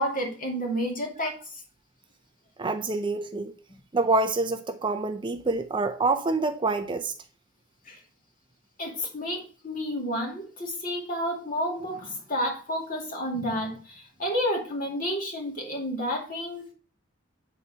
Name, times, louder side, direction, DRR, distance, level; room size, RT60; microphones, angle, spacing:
voice 1, 0.0-1.6 3.7-3.8 7.9-8.0 8.8-16.6, equal, 45° left, 2.5 m, -30 dB
voice 2, 2.6-3.5 3.9-7.1, right 3 dB, 25° right, 0.5 m, -26 dB
8.3 x 4.1 x 5.4 m
head